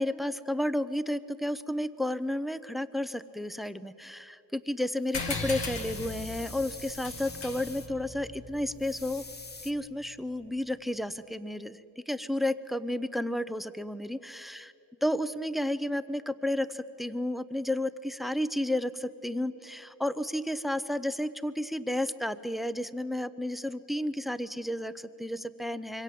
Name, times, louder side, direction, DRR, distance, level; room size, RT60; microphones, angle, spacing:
voice 1, 0.0-9.3 9.6-14.7 15.0-26.0, left 1 dB, ahead, 15 dB, 0.7 m, -32 dB
sound 1, 5.0-7.9 8.8-9.7, left 3 dB, 25° left, 1.1 m, -45 dB
sound 2, 5.1-10.1, left 3 dB, 80° left, 3.1 m, -39 dB
26.0 x 23.5 x 7.7 m, 2.8 s
cardioid pair, 100°, 42 cm